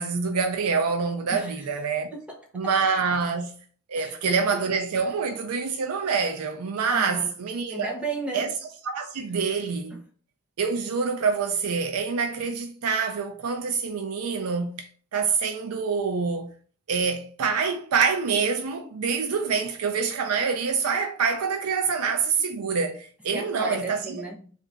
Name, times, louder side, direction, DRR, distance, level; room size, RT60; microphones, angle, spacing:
voice 1, 0.0-2.1 2.5-3.6 3.9-7.9 8.3-8.5 8.8-10.0 10.6-14.9 15.1-16.5 16.9-24.2, right 5 dB, 85° right, 0.5 m, -26 dB
voice 2, 1.3-1.8 2.1-2.7 3.9-4.6 6.9-7.3 7.7-8.5 9.9-10.0 23.3-24.5, right 2 dB, 5° right, 0.7 m, -35 dB
3.7 x 2.5 x 3.4 m
head